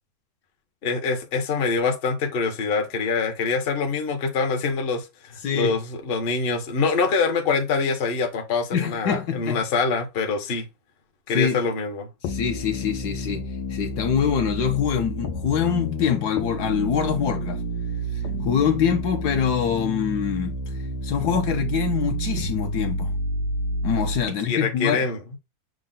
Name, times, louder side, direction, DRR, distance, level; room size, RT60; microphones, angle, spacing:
voice 1, 0.8-10.7 11.3-12.1 24.4-25.2, left 4 dB, 50° left, 0.7 m, -25 dB
voice 2, 5.4-5.7 8.7-9.6 11.3-11.6 12.2-13.4 13.7-17.6 18.4-20.6 21.0-23.1 23.8-25.0, left 7 dB, 70° left, 1.1 m, -24 dB
sound 1, 12.2-24.3, equal, 90° left, 1.4 m, -30 dB
6.3 x 2.1 x 3.7 m
omnidirectional pair, 2.0 m